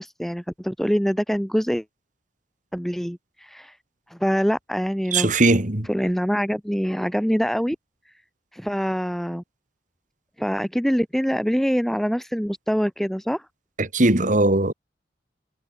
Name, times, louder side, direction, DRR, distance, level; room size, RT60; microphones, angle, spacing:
voice 1, 0.0-1.8 2.7-3.8 4.1-5.3 5.9-7.8 8.5-9.4 10.4-13.4, equal, ahead, 2.5 m, -24 dB
voice 2, 5.1-5.9 13.8-14.7, right 2 dB, 45° right, 2.8 m, -19 dB
head